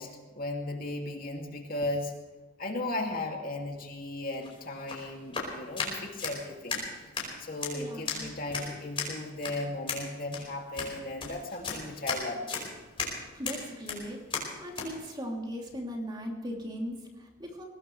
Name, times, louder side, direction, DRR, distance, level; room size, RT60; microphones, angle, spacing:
voice 1, 0.0-2.1 2.6-6.8 7.4-12.7, left 2 dB, 40° left, 1 dB, 2.5 m, -36 dB
sound 1, 4.3-14.9, left 4 dB, 25° left, 4.9 m, -37 dB
voice 2, 7.7-8.3 13.3-17.7, equal, 20° right, 0 dB, 2.9 m, -38 dB
22.5 x 19.0 x 3.3 m, 1.3 s
head